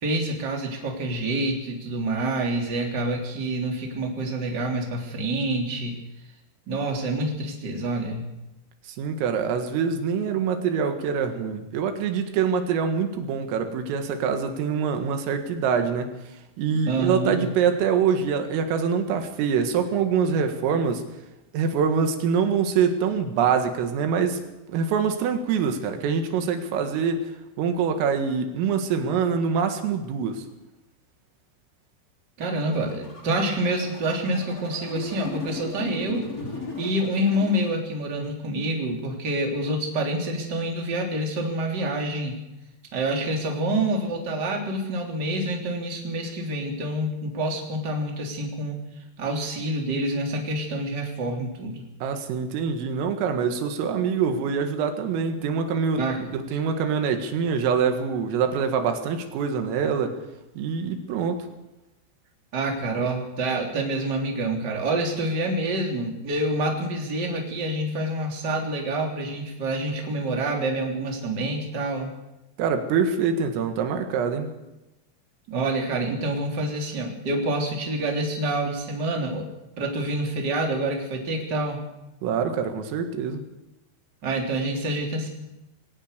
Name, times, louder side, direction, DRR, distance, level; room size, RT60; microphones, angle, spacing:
voice 1, 0.0-5.9 6.7-8.3 16.9-17.5 32.4-36.3 36.8-42.4 42.9-48.8 49.2-51.8 56.0-56.2 62.5-72.1 75.5-79.4 79.8-81.8 84.2-85.3, right 1 dB, 25° right, 1 dB, 3.2 m, -27 dB
voice 2, 9.0-16.1 16.6-21.0 21.5-24.4 24.7-27.2 27.6-30.4 52.0-60.2 60.6-61.4 72.6-74.5 82.2-83.4, right 6 dB, 85° right, 6 dB, 4.5 m, -25 dB
sound 1, 32.4-37.7, left 2 dB, 20° left, 2.7 m, -37 dB
21.5 x 18.0 x 6.8 m, 0.97 s
omnidirectional pair, 5.8 m